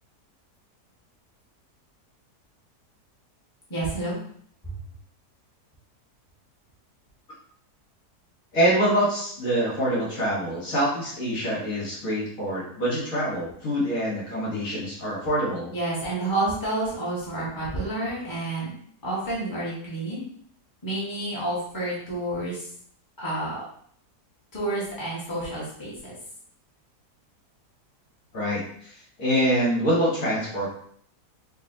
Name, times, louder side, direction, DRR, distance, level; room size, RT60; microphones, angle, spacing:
voice 1, 3.7-4.2 4.6-4.7 15.7-18.7 19.0-20.2 20.8-22.7 23.2-23.6 24.5-26.1, right 2 dB, 15° left, -7 dB, 1.3 m, -29 dB
voice 2, 8.5-15.7 28.3-30.7, equal, 60° left, -6 dB, 1.7 m, -25 dB
5.4 x 2.6 x 2.7 m, 0.62 s
omnidirectional pair, 1.7 m